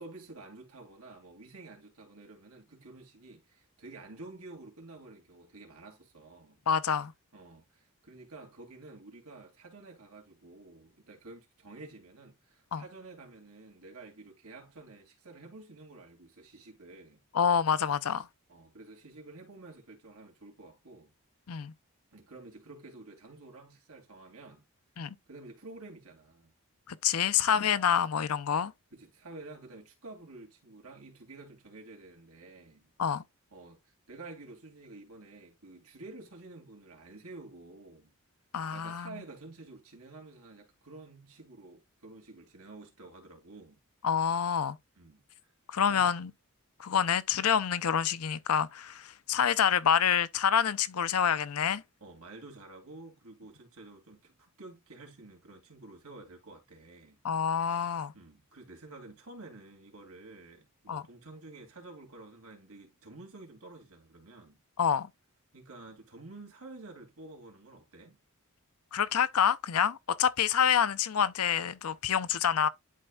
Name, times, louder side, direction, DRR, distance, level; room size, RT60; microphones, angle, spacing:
voice 1, 0.0-6.6 7.3-17.2 18.1-18.2 18.5-21.1 22.1-24.6 25.3-26.5 27.5-27.8 28.9-32.9 33.5-38.1 38.7-43.8 45.0-45.5 45.9-46.1 52.0-57.2 57.5-64.6 65.5-68.2, right 2 dB, 75° right, 2.6 m, -50 dB
voice 2, 6.7-7.1 12.7-12.8 17.3-18.3 21.5-21.7 25.0-25.1 26.9-28.7 33.0-33.2 38.5-39.1 44.0-44.8 45.7-46.3 46.8-51.8 57.2-58.1 60.9-61.0 64.8-65.1 68.9-72.7, left 8 dB, 75° left, 0.6 m, -27 dB
11.0 x 4.4 x 2.3 m
head